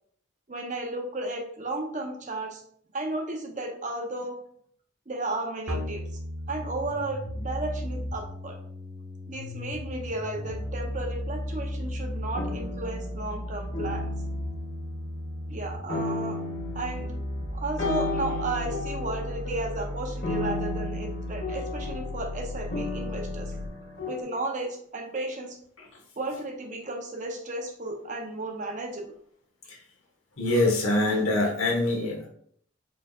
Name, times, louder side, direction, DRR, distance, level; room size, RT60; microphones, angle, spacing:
voice 1, 0.5-2.6 2.9-4.4 5.1-6.0 6.5-8.6 9.3-14.1 15.5-16.4 16.7-17.2 17.5-23.6 24.0-25.6 26.2-29.1, right 2 dB, 35° right, 2 dB, 0.7 m, -34 dB
sound 1, 5.7-23.7, equal, 85° right, 1.2 m, -35 dB
sound 2, 10.3-11.5 12.3-15.5 15.9-24.2, left 3 dB, 55° left, 1.6 m, -35 dB
voice 2, 30.4-32.3, left 2 dB, 80° left, 1 dB, 1.2 m, -24 dB
4.5 x 3.9 x 2.3 m, 0.62 s
head